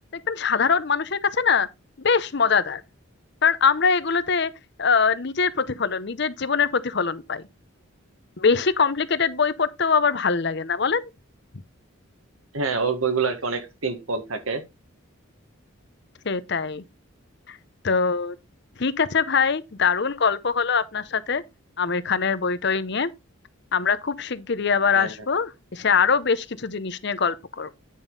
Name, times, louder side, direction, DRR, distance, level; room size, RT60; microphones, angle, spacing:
voice 1, 0.3-1.7 2.0-2.8 3.4-4.5 4.8-7.4 8.4-11.1 16.2-16.8 17.5-17.6 17.8-18.4 18.8-21.4 21.8-23.1 23.7-27.8, left 5 dB, 55° left, 0.7 m, -23 dB
voice 2, 12.5-14.6 24.9-25.1, right 4 dB, 85° right, 1.7 m, -26 dB
9.5 x 5.3 x 3.9 m
head